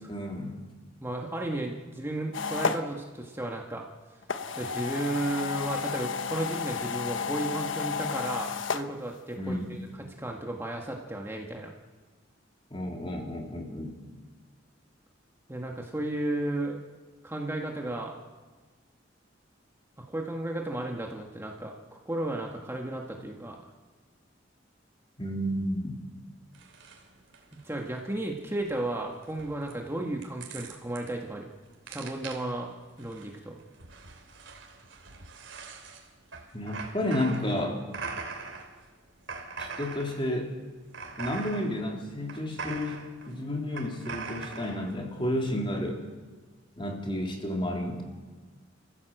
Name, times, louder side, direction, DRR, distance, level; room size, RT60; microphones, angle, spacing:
voice 1, 0.1-0.6 9.4-9.8 12.7-14.1 25.2-26.0 36.5-37.8 39.6-40.5 41.2-43.0 43.3-46.0 46.8-48.0, left 1 dB, 30° left, 1 dB, 3.7 m, -31 dB
voice 2, 1.0-3.8 4.6-9.9 10.2-11.7 15.5-16.8 17.2-18.1 20.1-23.7 27.6-31.5 31.9-33.6, right 1 dB, 15° right, 1 dB, 1.6 m, -34 dB
sound 1, 2.3-2.8 4.2-8.8, left 5 dB, 85° left, 1.1 m, -32 dB
sound 2, 26.5-45.3, right 4 dB, 85° right, 3.2 m, -42 dB
30.0 x 15.0 x 7.9 m, 1.4 s
head